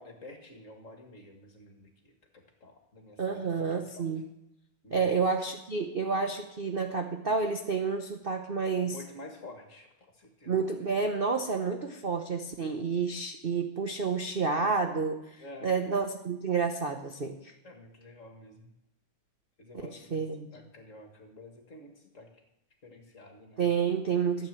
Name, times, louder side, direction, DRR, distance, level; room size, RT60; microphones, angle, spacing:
voice 1, 0.0-4.1 4.8-5.2 8.8-9.9 10.2-10.5 15.4-15.8 17.6-18.7 19.6-20.2 20.5-22.3 22.8-23.6, left 2 dB, 40° left, 4 dB, 2.1 m, -49 dB
voice 2, 3.2-4.2 4.9-9.0 10.5-17.5 19.8-20.5 23.6-24.5, right 5 dB, 45° right, 4 dB, 0.7 m, -30 dB
13.5 x 8.8 x 7.6 m, 0.89 s
omnidirectional pair, 2.3 m